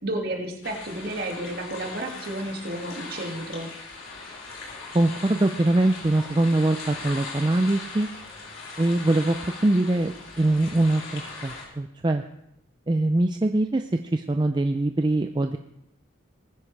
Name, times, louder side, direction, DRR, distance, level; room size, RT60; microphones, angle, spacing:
voice 1, 0.0-3.7, right 1 dB, 50° right, 1 dB, 2.1 m, -32 dB
sound 1, 0.6-11.6, left 3 dB, 90° left, 3.6 m, -39 dB
voice 2, 4.9-8.1 8.8-10.1 10.4-12.2 12.9-15.6, right 2 dB, 20° right, 6 dB, 0.4 m, -23 dB
20.0 x 10.0 x 3.3 m, 0.80 s
head